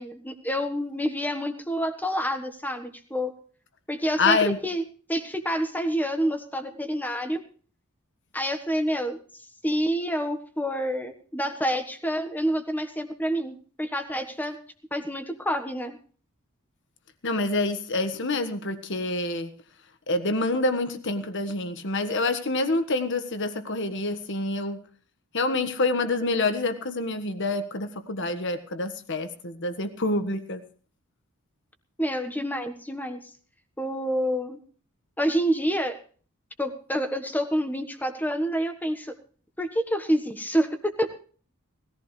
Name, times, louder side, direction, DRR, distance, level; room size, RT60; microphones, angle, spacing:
voice 1, 0.0-3.3 3.9-4.8 5.1-7.4 8.3-9.2 9.6-14.6 14.9-16.0 32.0-33.2 33.8-34.6 35.2-36.0 36.6-39.1 39.6-41.2, equal, 10° left, 6 dB, 1.3 m, -28 dB
voice 2, 4.2-4.6 17.2-19.5 20.1-24.8 25.3-30.6, left 2 dB, 55° left, 9 dB, 1.5 m, -27 dB
19.5 x 14.5 x 3.3 m, 0.42 s
head